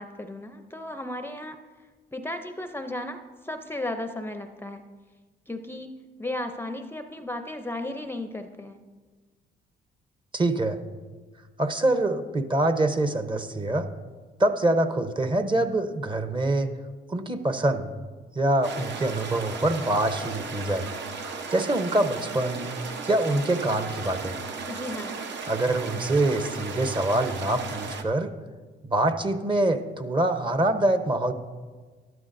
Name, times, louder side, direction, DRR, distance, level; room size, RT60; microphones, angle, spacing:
voice 1, 0.0-1.6 2.1-3.2 3.4-4.8 5.5-5.9 6.2-8.8 24.7-25.2, left 1 dB, 10° left, 7 dB, 0.5 m, -34 dB
voice 2, 10.3-10.8 11.6-13.9 14.4-16.7 17.1-17.9 18.3-20.9 21.5-22.7 23.1-24.4 25.5-28.3 28.8-31.3, right 1 dB, 25° right, 8 dB, 0.8 m, -25 dB
sound 1, 18.6-28.0, right 4 dB, 65° right, 0.9 m, -35 dB
12.5 x 11.5 x 2.6 m, 1.4 s
cardioid pair, 90°, 20 cm